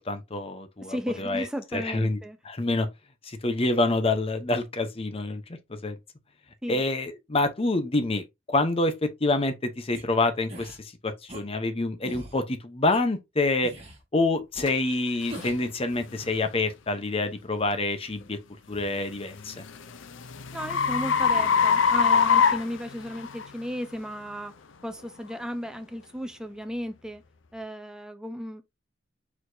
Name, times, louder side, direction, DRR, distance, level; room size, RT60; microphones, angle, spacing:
voice 1, 0.1-1.4 1.7-2.2 2.5-2.9 3.2-5.4 5.7-6.0 6.7-13.7 14.1-18.4 18.7-19.6, left 2 dB, 30° left, 0.8 m, -27 dB
voice 2, 0.9-2.4 6.6-6.8 20.5-24.5 24.8-27.2 27.5-28.6, equal, 5° right, 0.6 m, -35 dB
sound 1, 9.9-10.0 10.5-10.8 11.3-11.4 12.0-12.4 12.9-13.0 13.6-14.0 14.5-14.7 15.3-15.7, right 1 dB, 30° right, 1.8 m, -41 dB
sound 2, 14.7-14.8 15.3-15.5 16.1-16.3 19.0-23.5, left 6 dB, 85° left, 0.6 m, -23 dB
4.7 x 4.2 x 2.6 m
head